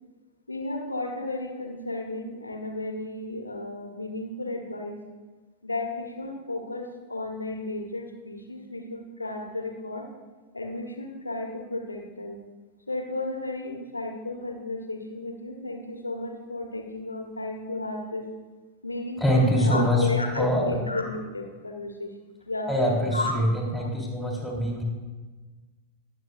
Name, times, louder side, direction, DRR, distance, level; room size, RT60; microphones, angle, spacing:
voice 1, 0.5-5.0 5.6-10.1 10.5-12.4 12.9-18.2 18.8-23.3, left 2 dB, 80° left, 2 dB, 1.3 m, -33 dB
voice 2, 19.2-20.1 20.3-20.8 22.7-24.8, equal, ahead, -3 dB, 3.5 m, -24 dB
21.0 x 7.4 x 2.6 m, 1.3 s
figure-of-eight pair, 90°, 0 cm